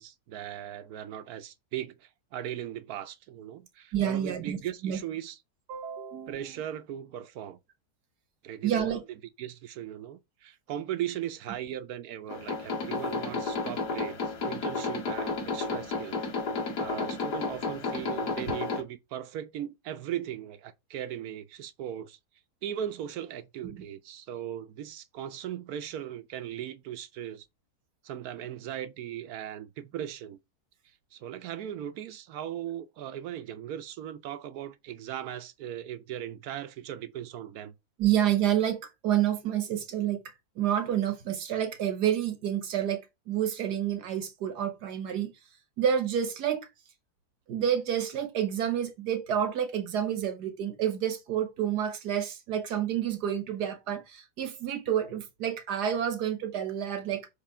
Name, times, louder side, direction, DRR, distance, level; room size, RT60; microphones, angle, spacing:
voice 1, 0.0-5.4 6.3-7.6 8.4-16.3 16.8-22.2 22.6-27.5 28.0-30.4 31.1-37.7, right 11 dB, 70° right, 1.1 m, -38 dB
voice 2, 3.9-5.0 5.7-6.6 8.6-9.0 23.6-23.8 38.0-40.2 40.6-45.3 45.8-46.7 47.5-57.3, right 10 dB, 90° right, 1.7 m, -29 dB
sound 1, 12.3-18.8, left 3 dB, 85° left, 2.6 m, -32 dB
6.6 x 3.1 x 4.7 m
omnidirectional pair, 1.7 m